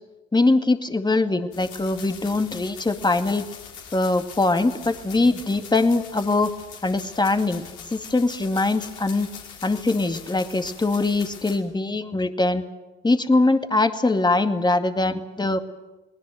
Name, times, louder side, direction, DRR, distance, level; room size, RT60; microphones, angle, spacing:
voice 1, 0.3-3.5 3.9-6.5 6.8-7.6 7.9-9.3 9.6-12.6 13.0-15.6, left 2 dB, 15° left, 7 dB, 2.1 m, -22 dB
sound 1, 1.5-11.6, left 7 dB, 75° left, 5.6 m, -42 dB
29.5 x 20.0 x 7.9 m, 1.1 s
hypercardioid pair, 65°, 30 cm